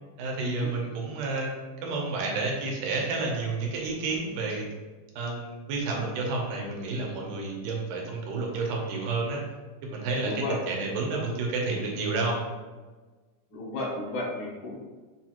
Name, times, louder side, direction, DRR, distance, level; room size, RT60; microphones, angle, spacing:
voice 1, 0.2-4.7 5.2-9.4 9.8-12.4, right 3 dB, 90° right, -1 dB, 2.4 m, -30 dB
voice 2, 10.2-10.6 13.5-14.7, left 2 dB, 70° left, -5 dB, 1.1 m, -33 dB
6.6 x 2.9 x 2.4 m, 1.3 s
omnidirectional pair, 3.6 m